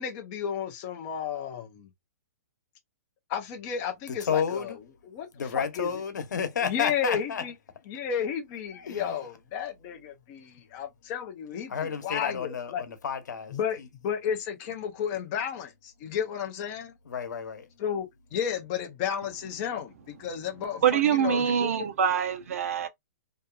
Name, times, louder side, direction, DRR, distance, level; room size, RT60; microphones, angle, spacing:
voice 1, 0.0-1.9 3.3-4.7 5.1-5.3 5.5-5.9 6.6-7.5 7.9-12.8 13.5-16.9 17.8-21.7, left 8 dB, 20° left, 0.4 m, -33 dB
voice 2, 4.1-4.8 5.3-7.4 8.7-9.2 11.7-13.9 17.0-17.7, left 7 dB, 80° left, 0.9 m, -31 dB
voice 3, 20.8-22.9, right 8 dB, 55° right, 0.5 m, -24 dB
2.7 x 2.3 x 2.2 m
hypercardioid pair, 175°, 10 cm